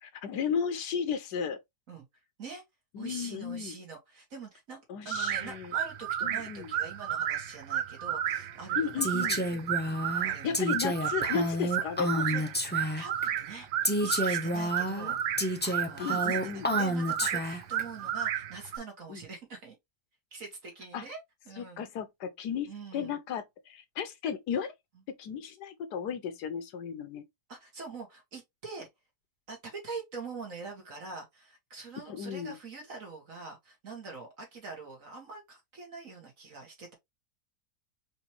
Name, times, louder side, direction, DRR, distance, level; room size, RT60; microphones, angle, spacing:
voice 1, 0.0-1.6 2.9-3.7 4.9-5.7 6.2-6.7 8.7-9.4 10.4-12.5 16.0-16.7 19.1-19.2 20.9-21.0 21.6-24.7 25.1-27.2 32.1-32.6, left 7 dB, 80° left, 1.4 m, -34 dB
voice 2, 3.0-4.8 5.0-9.6 10.2-10.6 12.2-13.7 14.0-19.8 20.3-21.2 21.5-21.9 22.7-23.2 27.5-28.9 29.5-36.9, right 4 dB, 55° right, 2.2 m, -44 dB
sound 1, 5.1-18.8, right 10 dB, 90° right, 1.3 m, -33 dB
Female speech woman speaking, 9.0-13.2 13.8-17.8, equal, 10° left, 0.5 m, -30 dB
5.0 x 3.2 x 2.9 m
omnidirectional pair, 1.7 m